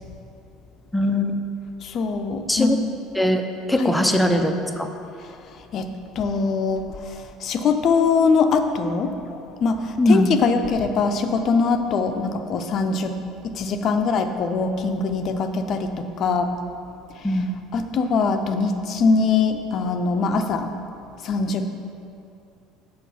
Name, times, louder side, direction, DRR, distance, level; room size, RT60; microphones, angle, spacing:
voice 1, 0.9-1.4 2.5-2.8 3.1-3.4 3.7-4.9 10.0-10.3 17.2-17.5, left 1 dB, 5° left, 5 dB, 0.7 m, -20 dB
voice 2, 1.8-2.8 3.8-4.0 5.7-13.2 13.4-16.5 17.7-20.7 21.2-21.7, left 4 dB, 45° left, 7 dB, 0.6 m, -22 dB
8.3 x 6.5 x 5.6 m, 2.6 s
figure-of-eight pair, 60°, 0 cm